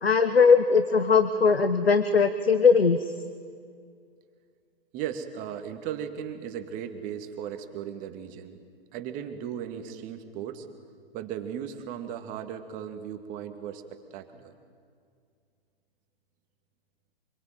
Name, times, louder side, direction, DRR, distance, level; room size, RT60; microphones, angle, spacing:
voice 1, 0.0-3.1, left 5 dB, 75° left, 10 dB, 1.4 m, -20 dB
voice 2, 4.9-8.6 8.9-10.7 11.1-14.5, right 9 dB, 25° right, 7 dB, 2.2 m, -37 dB
26.0 x 23.0 x 9.4 m, 2.2 s
figure-of-eight pair, 120°, 30 cm